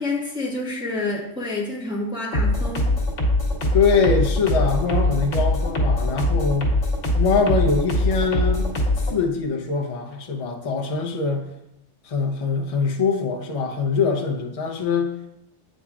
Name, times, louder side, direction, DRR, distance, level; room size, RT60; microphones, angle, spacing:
voice 1, 0.0-2.9, left 2 dB, 5° right, -6 dB, 1.3 m, -28 dB
sound 1, 2.3-9.1, left 1 dB, 90° left, 1.4 m, -22 dB
voice 2, 3.7-6.7 7.2-8.7 9.1-11.5 12.0-15.1, left 5 dB, 35° left, 2 dB, 0.6 m, -23 dB
8.4 x 5.1 x 2.4 m, 0.84 s
omnidirectional pair, 1.2 m